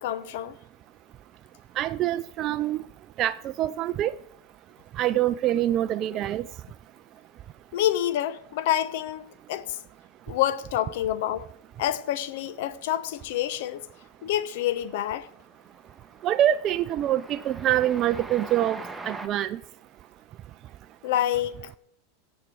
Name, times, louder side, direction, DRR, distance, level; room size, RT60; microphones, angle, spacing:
voice 1, 0.0-0.6 7.7-9.8 10.3-11.5 11.8-13.8 14.2-15.3 21.0-21.7, left 12 dB, 70° left, 0.8 m, -27 dB
voice 2, 1.8-2.8 3.2-4.1 5.0-6.4 16.2-18.8 19.1-19.6, right 12 dB, 40° right, 0.4 m, -25 dB
Train, 13.6-14.1 14.4-19.3, right 3 dB, 10° right, 1.2 m, -43 dB
16.5 x 7.4 x 4.8 m
hypercardioid pair, 110°, 0 cm